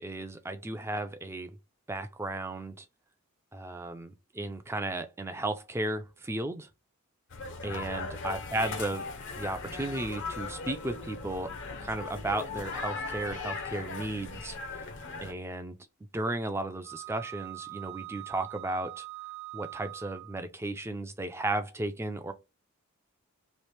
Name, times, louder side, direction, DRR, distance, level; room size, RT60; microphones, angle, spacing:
voice 1, 0.0-1.6 1.9-2.9 3.5-6.7 7.6-9.0 9.4-11.5 11.8-14.9 15.2-15.8 16.1-19.0 19.5-22.3, right 2 dB, 10° right, 0.4 m, -34 dB
sound 1, 7.3-15.3, left 4 dB, 55° left, 0.6 m, -38 dB
Wind instrument woodwind instrument, 16.8-20.4, right 21 dB, 55° right, 0.8 m, -43 dB
3.1 x 2.4 x 3.2 m
head